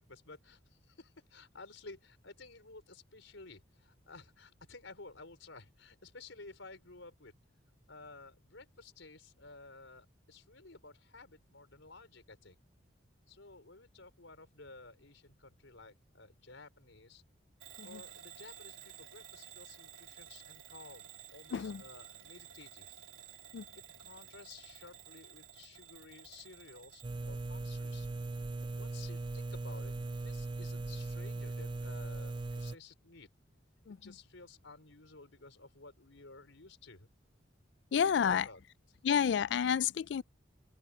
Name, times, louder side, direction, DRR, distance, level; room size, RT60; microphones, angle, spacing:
voice 1, 0.0-7.3 7.9-12.6 13.3-17.2 17.8-23.0 23.7-28.1 28.8-33.3 33.9-37.1 38.0-38.6, left 3 dB, 80° left, 4.4 m, -54 dB
Bell / Alarm, 17.6-27.1, right 8 dB, 90° right, 3.4 m, -53 dB
voice 2, 21.5-21.8 23.5-23.6 33.9-34.0 37.9-38.4 39.0-40.2, left 7 dB, 65° left, 0.3 m, -29 dB
sound 1, 27.0-32.8, right 2 dB, 25° right, 0.4 m, -39 dB
open air
head